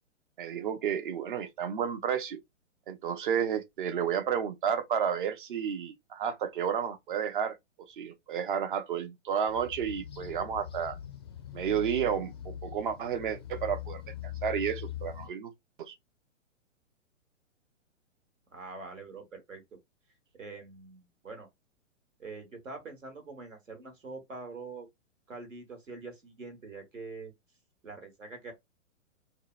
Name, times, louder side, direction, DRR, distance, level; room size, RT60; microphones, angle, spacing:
voice 1, 0.4-2.4 2.9-7.6 8.0-11.0 11.5-14.0 14.4-15.5 15.8-15.9, right 8 dB, 45° right, 0.6 m, -31 dB
sound 1, 9.5-15.3, left 11 dB, 20° left, 0.3 m, -42 dB
voice 2, 18.5-19.6 20.4-21.5 22.2-24.9 25.3-27.3 27.8-28.5, right 3 dB, 80° right, 1.3 m, -44 dB
2.7 x 2.1 x 2.4 m
figure-of-eight pair, 115°, 38 cm